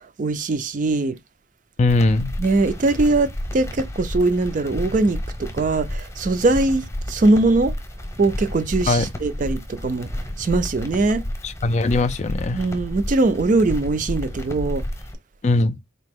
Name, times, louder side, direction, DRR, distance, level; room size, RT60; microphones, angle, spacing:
voice 1, 0.2-1.2 2.4-7.7 8.2-10.1 10.4-11.2 12.5-14.8, right 2 dB, 40° right, 0.4 m, -21 dB
voice 2, 1.8-2.3 8.9-9.1 11.4-12.6 15.4-15.8, left 2 dB, 35° left, 0.3 m, -20 dB
sound 1, 1.9-15.1, left 1 dB, 15° left, 0.8 m, -31 dB
4.2 x 2.8 x 3.4 m
head